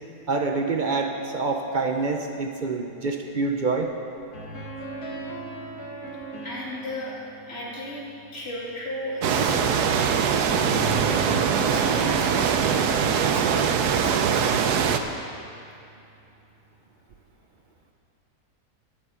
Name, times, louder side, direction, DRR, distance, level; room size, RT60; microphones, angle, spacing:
voice 1, 0.3-3.9, right 3 dB, 50° right, 3 dB, 0.6 m, -26 dB
sound 1, 4.3-8.5 10.6-15.6, right 1 dB, 80° left, 2.1 m, -38 dB
voice 2, 6.4-7.1 7.5-8.0 8.3-11.0 11.7-14.5, left 1 dB, 40° left, -5 dB, 2.6 m, -35 dB
sound 2, 9.2-15.0, right 7 dB, 85° right, 1.2 m, -22 dB
11.5 x 10.0 x 5.7 m, 2.6 s
omnidirectional pair, 1.6 m